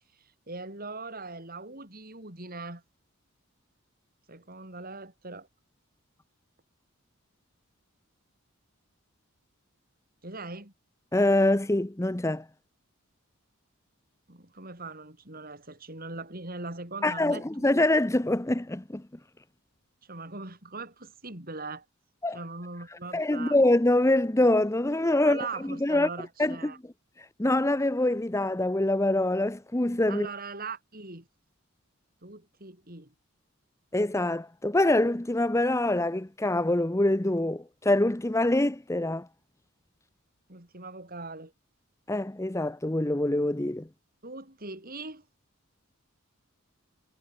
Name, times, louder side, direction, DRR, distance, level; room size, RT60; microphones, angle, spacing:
voice 1, 0.5-2.8 4.3-5.5 10.2-10.7 14.3-17.7 20.1-21.8 22.3-23.6 25.2-26.8 30.1-31.3 32.2-33.1 40.5-41.5 44.2-45.2, right 3 dB, 40° right, 5.6 m, -40 dB
voice 2, 11.1-12.5 17.0-19.0 22.2-22.4 22.9-26.1 26.4-26.9 27.2-30.3 33.9-39.3 42.1-43.9, left 1 dB, 15° left, 0.7 m, -25 dB
head